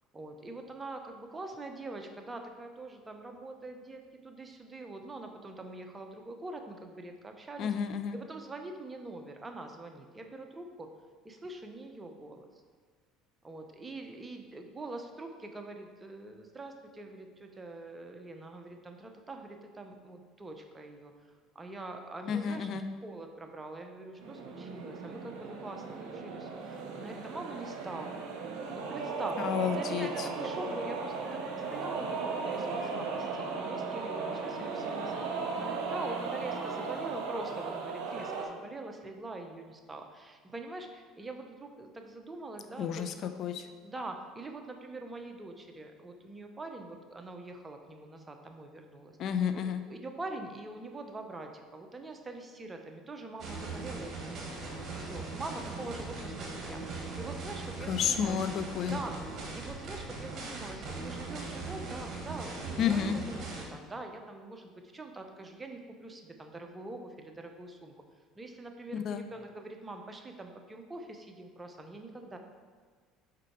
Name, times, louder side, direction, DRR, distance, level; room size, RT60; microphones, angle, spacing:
voice 1, 0.1-7.7 8.1-10.9 11.2-12.5 13.4-21.1 21.5-22.7 23.0-28.2 28.7-35.3 35.5-43.3 43.8-49.2 49.5-49.6 49.9-54.5 55.0-58.4 58.8-59.2 59.5-67.9 68.4-72.4, right 2 dB, 20° right, 4 dB, 0.8 m, -44 dB
voice 2, 7.6-8.2 22.3-22.8 29.4-30.1 42.8-43.1 43.4-43.6 49.2-49.8 57.9-59.0 62.8-63.2 68.9-69.2, left 8 dB, 55° left, 9 dB, 0.3 m, -30 dB
sound 1, 24.2-38.5, right 4 dB, 70° right, 0.8 m, -36 dB
sound 2, 53.4-63.7, right 3 dB, 45° right, 1.5 m, -40 dB
4.9 x 4.6 x 4.5 m, 1.5 s
hypercardioid pair, 70°, 0 cm